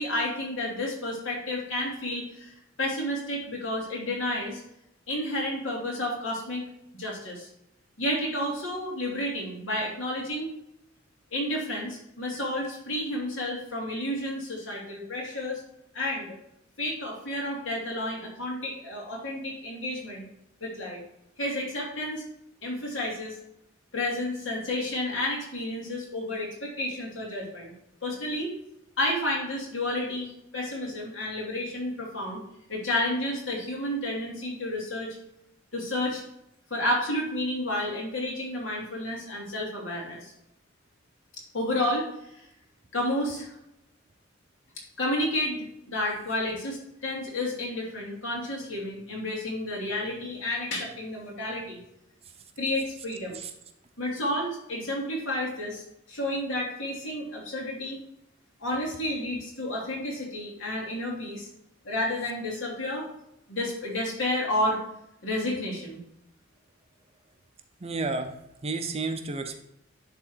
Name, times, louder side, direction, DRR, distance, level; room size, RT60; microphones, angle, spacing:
voice 1, 0.0-4.6 5.1-7.5 8.0-10.5 11.3-15.6 15.9-16.4 16.8-20.2 20.6-21.0 21.4-22.2 22.6-23.4 23.9-27.7 28.0-28.5 29.0-32.4 32.7-35.2 35.7-36.2 36.7-40.3 41.5-42.1 42.9-43.5 45.0-51.8 52.6-53.4 54.0-58.0 58.6-61.5 61.8-63.1 63.5-64.8 65.2-66.0, left 1 dB, 75° left, -3 dB, 3.0 m, -31 dB
voice 2, 67.8-68.4 68.6-69.6, right 3 dB, 30° right, 7 dB, 0.7 m, -31 dB
11.0 x 3.8 x 4.5 m, 0.80 s
head